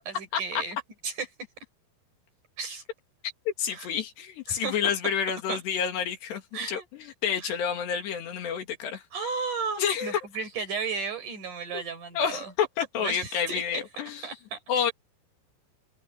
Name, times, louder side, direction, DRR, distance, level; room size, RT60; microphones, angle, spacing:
voice 1, 0.1-0.8 1.0-1.3 2.6-2.8 3.7-3.9 4.5-5.1 5.5-5.6 6.5-6.9 7.4-7.5 9.1-12.5 13.0-13.8 14.2-14.6, right 5 dB, 45° right, 6.1 m, -34 dB
voice 2, 3.5-6.4 6.7-9.0 9.8-10.2 11.7-11.8 12.2-14.2 14.7-14.9, left 7 dB, 70° left, 4.4 m, -29 dB
open air
omnidirectional pair, 5.1 m